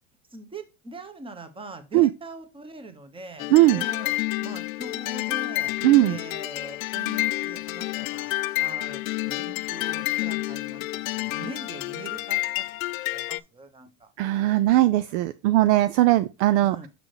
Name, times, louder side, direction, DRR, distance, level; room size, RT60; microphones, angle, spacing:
voice 1, 0.3-4.1 4.4-5.7 6.0-8.3 8.6-10.8 11.1-12.6 13.1-14.1 14.4-14.9 16.6-16.9, right 2 dB, 15° right, 1.2 m, -42 dB
sound 1, 3.4-13.4, left 19 dB, 85° left, 0.5 m, -29 dB
voice 2, 3.5-3.8 5.8-6.2 14.2-16.8, right 16 dB, 65° right, 0.5 m, -19 dB
6.7 x 6.0 x 3.0 m
supercardioid pair, 125°, 40 cm